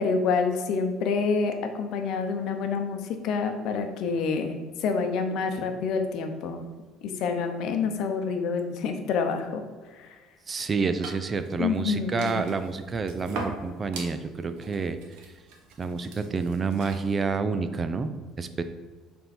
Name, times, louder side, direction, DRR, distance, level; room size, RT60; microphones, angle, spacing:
voice 1, 0.0-6.6 7.0-9.6 10.0-10.1 11.6-12.5, left 5 dB, 65° left, 6 dB, 0.8 m, -27 dB
voice 2, 10.5-15.0 15.8-18.1 18.4-18.6, right 4 dB, 25° right, 10 dB, 0.5 m, -28 dB
sound 1, 10.9-17.1, right 3 dB, 90° right, 1.1 m, -42 dB
6.7 x 3.7 x 4.3 m, 1.4 s
cardioid pair, 130°, 0 cm